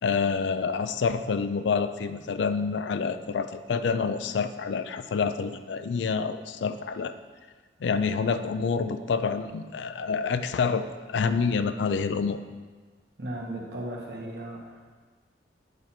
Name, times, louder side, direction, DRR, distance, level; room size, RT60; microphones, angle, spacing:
voice 1, 0.0-7.1 7.8-12.5, left 5 dB, 85° left, 11 dB, 0.4 m, -27 dB
voice 2, 13.2-14.8, right 1 dB, 65° right, -2 dB, 1.3 m, -36 dB
8.2 x 4.3 x 4.3 m, 1.4 s
head